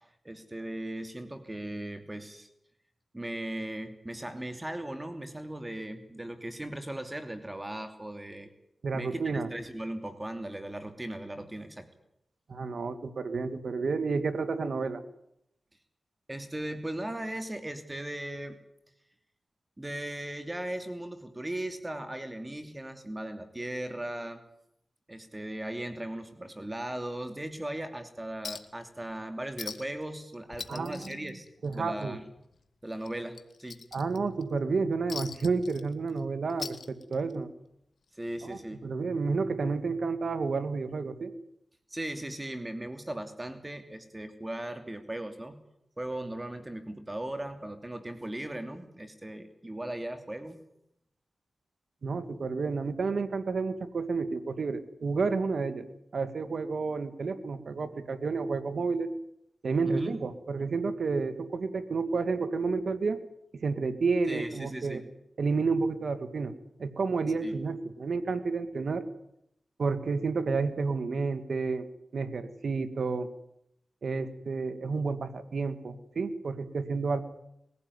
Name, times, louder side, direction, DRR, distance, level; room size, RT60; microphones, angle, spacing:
voice 1, 0.0-2.5 3.1-8.5 8.9-11.9 16.3-18.6 19.8-24.4 25.1-31.5 31.7-32.2 32.8-33.8 38.2-38.8 41.9-45.6 46.0-50.6 59.8-60.2 64.3-65.1 67.4-67.6, right 1 dB, 20° right, 7 dB, 2.7 m, -38 dB
voice 2, 8.8-9.5 12.5-15.0 30.7-31.3 31.6-32.2 33.9-37.5 38.4-41.3 52.0-59.1 59.6-63.2 63.5-65.0 65.4-66.5 66.8-69.0 69.8-71.9 72.1-73.3 74.0-77.2, right 4 dB, 75° right, 11 dB, 1.8 m, -30 dB
Chink clink, 28.4-28.8 29.1-29.2 29.6-30.0 30.3-32.0 32.4-32.5 33.0-34.4 35.1-36.2 36.5-37.4 38.5-38.6, left 5 dB, 80° left, 1.4 m, -42 dB
21.5 x 16.0 x 9.7 m, 0.77 s
cardioid pair, 50°, 0 cm